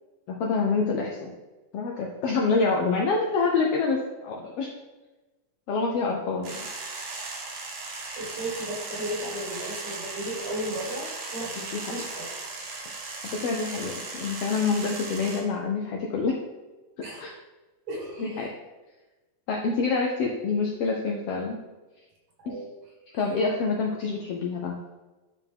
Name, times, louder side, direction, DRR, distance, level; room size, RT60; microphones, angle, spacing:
voice 1, 0.3-1.3 1.7-4.7 5.7-6.6 11.6-11.9 13.2-16.4 17.2-17.3 18.2-18.5 19.5-21.6 22.5-22.6 23.1-24.8, left 4 dB, 75° left, 0 dB, 1.4 m, -27 dB
sound 1, 6.4-15.4, right 3 dB, 85° right, 2.9 m, -37 dB
voice 2, 8.1-12.3 17.0-17.4 17.9-18.5 22.4-22.7 23.1-23.2, right 1 dB, 60° right, -2 dB, 2.8 m, -35 dB
10.5 x 4.6 x 3.5 m, 1.2 s
omnidirectional pair, 3.5 m